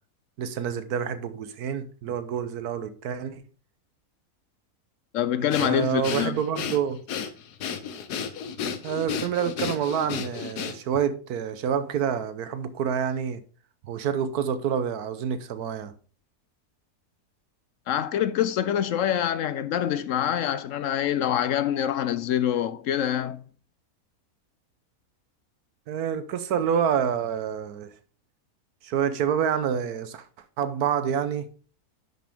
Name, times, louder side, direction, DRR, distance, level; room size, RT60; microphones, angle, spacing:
voice 1, 0.4-3.4 5.4-7.0 8.8-13.4 13.8-15.9 25.9-27.9 28.8-30.3 30.6-31.5, right 8 dB, 75° right, 1.3 m, -27 dB
voice 2, 5.1-6.4 17.9-23.4, left 10 dB, 70° left, 0.8 m, -25 dB
Breathing, 5.5-11.0, left 7 dB, 85° left, 1.4 m, -33 dB
10.5 x 6.2 x 3.5 m
omnidirectional pair, 1.7 m